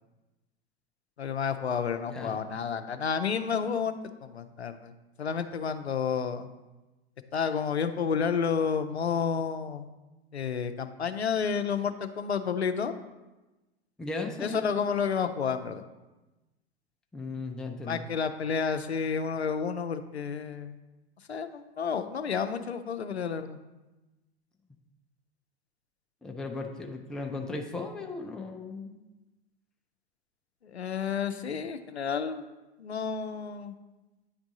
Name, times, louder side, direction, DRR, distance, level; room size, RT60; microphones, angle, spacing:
voice 1, 1.2-4.9 5.2-6.5 7.3-9.9 10.3-12.9 14.4-15.8 17.8-20.8 21.3-23.6 30.6-32.4 32.8-33.7, left 6 dB, 85° left, 9 dB, 0.5 m, -30 dB
voice 2, 14.0-14.6 17.1-18.0 26.2-29.0, left 3 dB, ahead, 2 dB, 0.4 m, -36 dB
9.6 x 3.5 x 3.9 m, 1.1 s
figure-of-eight pair, 90°, 32 cm